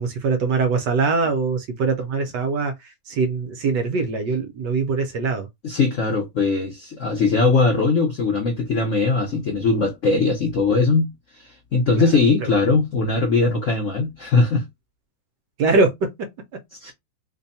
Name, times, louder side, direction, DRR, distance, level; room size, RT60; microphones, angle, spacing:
voice 1, 0.0-5.5 12.0-12.1 12.4-12.5 15.6-16.1, right 4 dB, 65° right, 1.3 m, -22 dB
voice 2, 5.6-11.1 11.4-14.6 16.8-16.9, left 3 dB, 75° left, 0.7 m, -20 dB
3.3 x 2.2 x 4.0 m
omnidirectional pair, 2.3 m